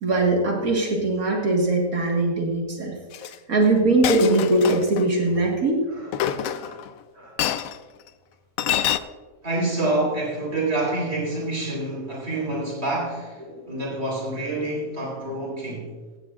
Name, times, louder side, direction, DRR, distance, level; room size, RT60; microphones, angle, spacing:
voice 1, 0.0-3.0 3.5-5.8 13.5-13.8, right 2 dB, 75° right, -1 dB, 2.1 m, -21 dB
Chink clink, 3.1-3.3 4.0-5.0 6.1-6.9 7.4-7.8 8.6-9.0, left 10 dB, 75° left, 1.0 m, -26 dB
voice 2, 5.9-6.8 7.1-7.4 9.4-13.4 13.7-15.9, right 2 dB, 45° right, -3 dB, 4.1 m, -28 dB
16.5 x 15.5 x 2.5 m, 1.4 s
omnidirectional pair, 1.5 m